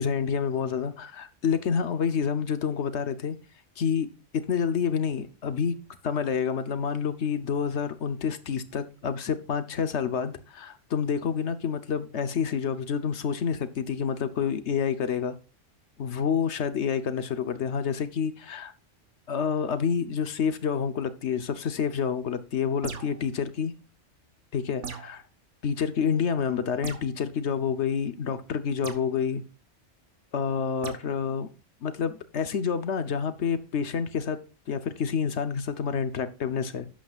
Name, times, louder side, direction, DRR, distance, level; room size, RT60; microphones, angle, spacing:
voice 1, 0.0-3.4 3.8-15.4 16.0-18.7 19.3-23.8 24.5-25.2 25.6-29.4 30.3-31.5 31.8-34.4 34.7-36.9, left 7 dB, 70° left, 1.2 m, -28 dB
sound 1, 22.8-23.3 24.8-25.2 26.8-27.1 28.8-29.1 30.8-31.0, right 6 dB, 75° right, 1.5 m, -38 dB
11.5 x 8.8 x 2.4 m
omnidirectional pair, 1.2 m